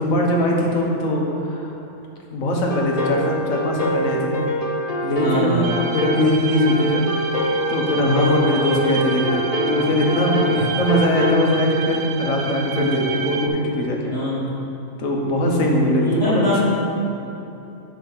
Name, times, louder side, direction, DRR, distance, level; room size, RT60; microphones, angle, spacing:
voice 1, 0.0-1.7 2.3-4.4 5.0-7.1 7.7-14.1 15.0-16.6, left 1 dB, 85° left, -1 dB, 1.6 m, -21 dB
sound 1, 2.7-11.4, left 1 dB, 35° left, 0.6 m, -25 dB
voice 2, 5.2-5.7 12.7-13.0 14.1-14.5 15.4-16.6, equal, 55° left, -8 dB, 1.4 m, -24 dB
sound 2, 5.6-13.5, right 6 dB, 70° right, 1.0 m, -30 dB
10.5 x 3.6 x 7.2 m, 2.9 s
omnidirectional pair, 1.4 m